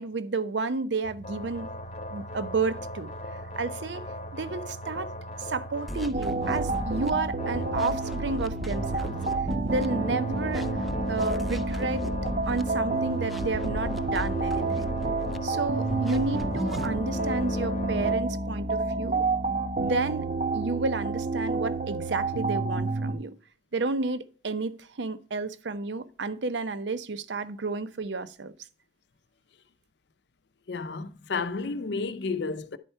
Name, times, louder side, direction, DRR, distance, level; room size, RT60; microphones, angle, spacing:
voice 1, 0.0-1.7 2.1-3.1 3.6-4.0 4.3-5.1 5.4-9.1 9.6-10.7 11.1-12.0 12.5-14.9 15.4-20.3 20.5-23.4 23.7-28.5, right 3 dB, 80° right, 0.7 m, -31 dB
sound 1, 1.0-18.1, left 1 dB, 35° left, 0.9 m, -38 dB
sound 2, 5.9-7.1 7.6-9.9 10.3-12.6 13.1-15.4 15.9-16.9, equal, ahead, 0.4 m, -36 dB
sound 3, 6.1-23.1, right 3 dB, 45° right, 0.7 m, -29 dB
voice 2, 30.7-32.8, left 4 dB, 70° left, 0.6 m, -31 dB
10.0 x 4.5 x 5.5 m
head